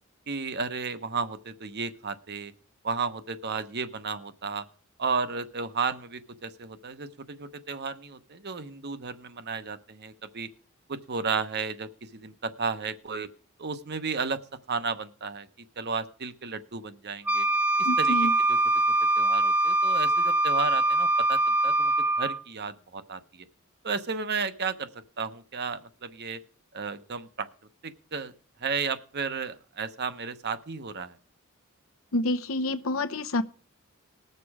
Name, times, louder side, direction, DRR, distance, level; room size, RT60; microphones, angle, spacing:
voice 1, 0.3-2.5 2.8-4.6 5.0-10.5 10.9-13.3 13.6-14.4 14.7-15.5 15.8-17.5 17.8-18.6 19.1-23.5 23.8-24.9 25.2-26.4 26.7-27.5 27.8-28.3 28.6-31.2, right 5 dB, 50° right, 11 dB, 1.0 m, -33 dB
Wind instrument woodwind instrument, 17.3-22.4, right 2 dB, 5° right, 0.9 m, -23 dB
voice 2, 17.8-18.3 32.1-33.4, left 1 dB, 70° left, 10 dB, 0.8 m, -28 dB
19.5 x 6.8 x 4.9 m, 0.41 s
head